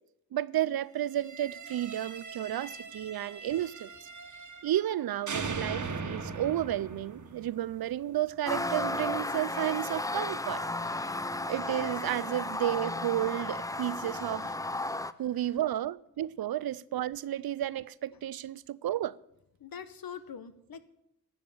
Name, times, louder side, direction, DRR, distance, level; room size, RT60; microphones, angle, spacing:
voice 1, 0.3-4.1 4.6-11.1 11.5-14.5 15.2-19.2, right 12 dB, 80° right, 0.5 m, -32 dB
sound 1, 1.1-5.0 5.3-8.3, right 4 dB, 55° right, 1.4 m, -40 dB
sound 2, 8.5-15.1, left 2 dB, 10° left, 0.5 m, -34 dB
voice 2, 19.6-20.8, left 7 dB, 75° left, 1.0 m, -44 dB
12.5 x 8.0 x 7.1 m
cardioid pair, 60°, 36 cm